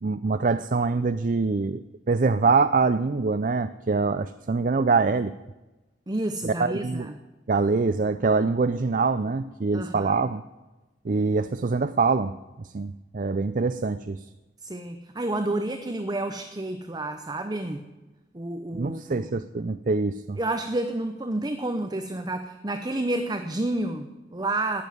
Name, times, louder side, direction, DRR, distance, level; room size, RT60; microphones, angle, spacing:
voice 1, 0.0-5.3 6.4-7.1 7.5-10.4 11.0-14.2 18.7-20.4, right 4 dB, 50° right, 12 dB, 0.5 m, -24 dB
voice 2, 6.1-7.1 9.7-10.2 14.6-17.8 18.3-19.3 20.4-24.8, right 2 dB, 25° right, 7 dB, 0.8 m, -30 dB
18.0 x 7.1 x 9.3 m, 1.1 s
head